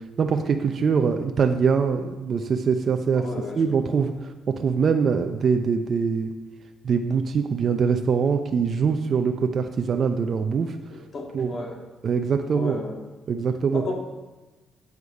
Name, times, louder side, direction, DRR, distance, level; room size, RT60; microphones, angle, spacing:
voice 1, 0.0-3.3 3.6-6.3 6.8-10.8 11.3-11.5 12.0-12.8 13.3-13.8, right 6 dB, 50° right, 6 dB, 0.6 m, -23 dB
voice 2, 3.2-3.6 3.9-4.0 10.9-11.8 12.5-12.9 13.7-13.9, left 2 dB, 50° left, 1 dB, 2.1 m, -33 dB
8.2 x 8.1 x 4.9 m, 1.2 s
cardioid pair, 90°, 0 cm